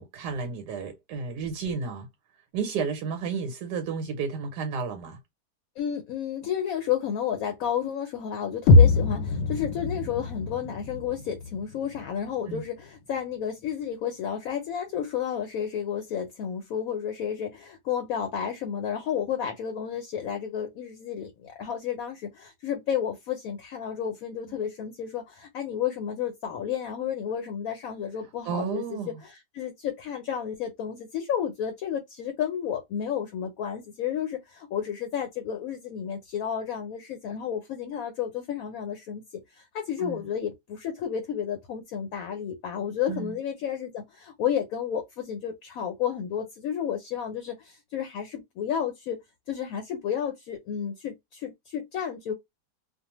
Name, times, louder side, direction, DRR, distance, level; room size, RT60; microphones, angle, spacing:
voice 1, 0.0-2.1 2.5-5.2 12.5-12.6 28.5-29.2 40.0-40.3 43.1-43.4, right 5 dB, 85° right, 1.3 m, -32 dB
voice 2, 5.8-39.2 39.5-49.2 49.5-52.3, left 8 dB, 70° left, 0.9 m, -31 dB
sound 1, 8.7-12.6, left 3 dB, 90° left, 1.2 m, -22 dB
2.6 x 2.3 x 2.8 m
omnidirectional pair, 1.8 m